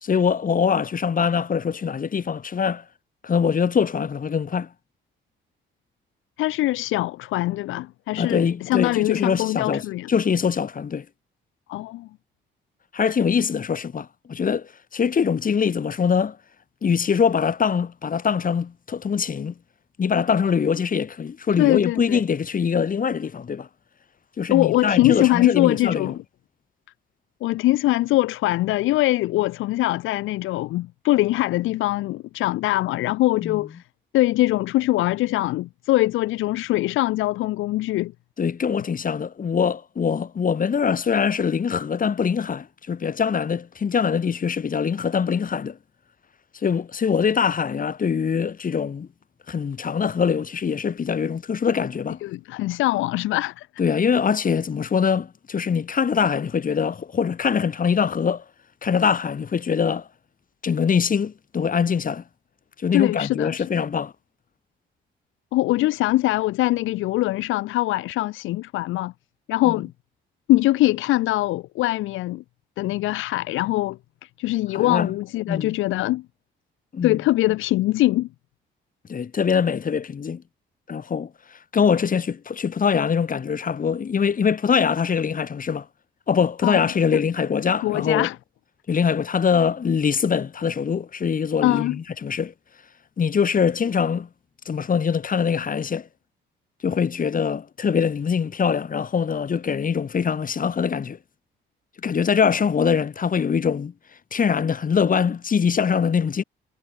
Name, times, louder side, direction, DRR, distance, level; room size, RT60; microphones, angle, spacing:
voice 1, 0.0-2.8 3.2-4.7 8.2-11.0 12.9-16.4 16.8-19.5 20.0-23.7 24.4-26.1 33.4-33.6 38.4-45.8 46.6-49.1 49.5-52.2 53.8-58.4 58.8-60.1 60.6-62.2 62.8-64.1 69.6-69.7 74.7-75.1 75.5-75.8 76.9-77.2 79.1-80.4 80.9-81.3 81.7-85.8 86.3-88.3 88.9-92.5 93.2-94.3 94.6-96.1 96.8-101.2 102.0-103.9 104.3-106.4, left 6 dB, 45° left, 3.3 m, -23 dB
voice 2, 6.4-10.1 11.7-12.1 21.6-22.2 24.5-26.2 27.4-33.8 34.1-38.1 52.2-53.7 62.9-63.6 65.5-69.1 69.5-69.9 70.5-72.4 72.8-74.0 74.4-76.2 77.0-78.3 86.6-86.8 87.8-88.4 91.6-92.0, left 17 dB, 85° left, 0.6 m, -22 dB
cardioid pair, 90°, 20 cm